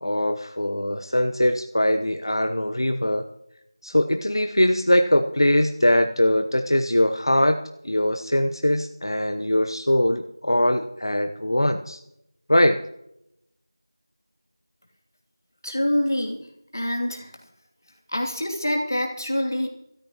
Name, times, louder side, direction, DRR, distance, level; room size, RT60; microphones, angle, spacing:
voice 1, 0.0-3.2 3.8-7.6 7.8-12.0 12.5-12.8, left 1 dB, 80° left, 6 dB, 1.0 m, -21 dB
voice 2, 15.6-16.5 16.7-17.3 18.1-19.7, left 1 dB, 50° left, 2 dB, 2.8 m, -25 dB
23.0 x 14.0 x 3.0 m, 0.79 s
figure-of-eight pair, 180°, 2 cm